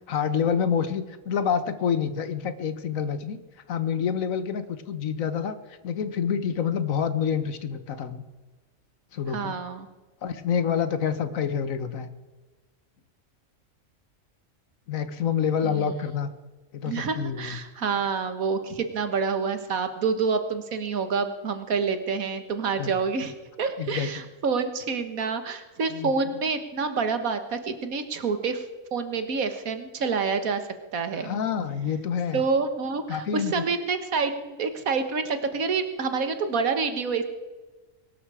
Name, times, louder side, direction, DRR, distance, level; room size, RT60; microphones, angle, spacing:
voice 1, 0.1-3.4 3.7-5.6 5.8-8.2 9.1-9.6 10.2-12.1 14.9-16.3 16.7-17.6 22.8-23.0 23.8-24.2 25.9-26.1 31.2-32.4 33.1-33.7, left 7 dB, 75° left, 12 dB, 1.4 m, -27 dB
voice 2, 9.3-9.9 15.6-15.9 16.8-28.7 28.9-31.3 32.3-37.2, right 5 dB, 80° right, 9 dB, 1.8 m, -28 dB
22.0 x 12.5 x 4.8 m, 1.2 s
omnidirectional pair, 1.4 m